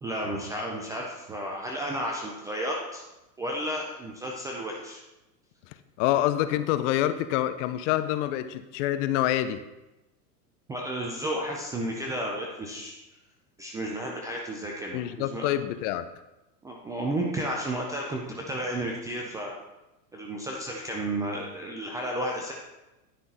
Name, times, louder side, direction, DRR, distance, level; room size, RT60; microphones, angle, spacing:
voice 1, 0.0-3.0 3.4-5.0 10.7-12.9 13.6-15.6 16.6-19.5 20.1-22.5, right 1 dB, 10° right, -1 dB, 0.3 m, -32 dB
voice 2, 5.7-9.6 14.9-16.1, left 13 dB, 50° left, 12 dB, 0.6 m, -27 dB
10.0 x 5.7 x 4.2 m, 0.99 s
hypercardioid pair, 110°, 49 cm